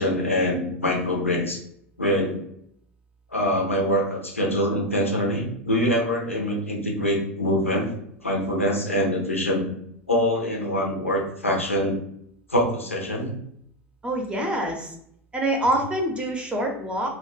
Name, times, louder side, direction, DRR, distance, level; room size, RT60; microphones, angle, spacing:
voice 1, 0.0-1.6 2.0-2.4 3.3-7.9 8.2-9.7 10.1-12.0 12.5-13.3, equal, 85° left, 1 dB, 0.5 m, -24 dB
voice 2, 14.0-14.9 15.3-17.2, right 1 dB, 15° right, 1 dB, 0.6 m, -25 dB
2.3 x 2.2 x 3.8 m, 0.72 s
figure-of-eight pair, 75°, 7 cm